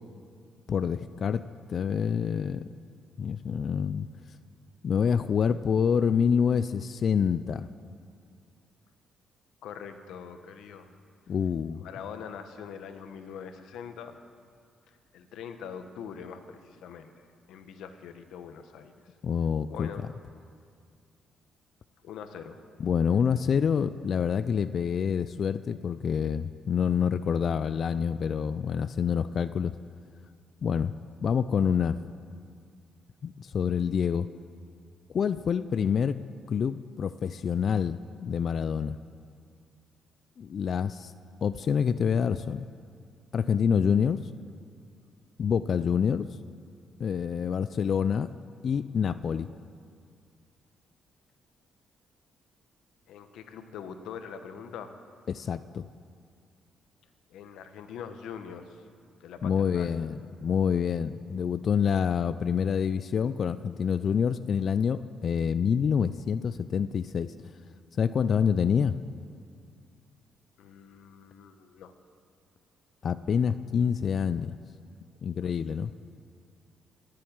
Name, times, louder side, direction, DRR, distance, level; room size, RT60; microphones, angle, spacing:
voice 1, 0.7-1.4 1.7-2.6 3.2-4.1 4.8-7.7 11.3-11.8 19.2-19.9 22.8-29.7 30.6-30.9 31.2-32.0 33.2-34.3 35.1-36.2 36.5-39.0 40.4-41.1 41.4-42.6 43.3-44.2 45.4-46.3 47.0-48.3 48.6-49.5 55.3-55.9 59.4-67.3 68.0-69.0 73.0-74.6 75.2-75.9, left 7 dB, 55° left, 13 dB, 0.4 m, -27 dB
voice 2, 9.6-10.9 11.8-14.2 14.9-17.1 17.5-18.9 19.7-20.0 22.0-22.6 53.1-55.0 57.3-58.9 59.2-59.9 70.6-71.9, left 7 dB, 80° left, 8 dB, 1.2 m, -43 dB
20.5 x 7.7 x 8.9 m, 2.2 s
cardioid pair, 90°, 0 cm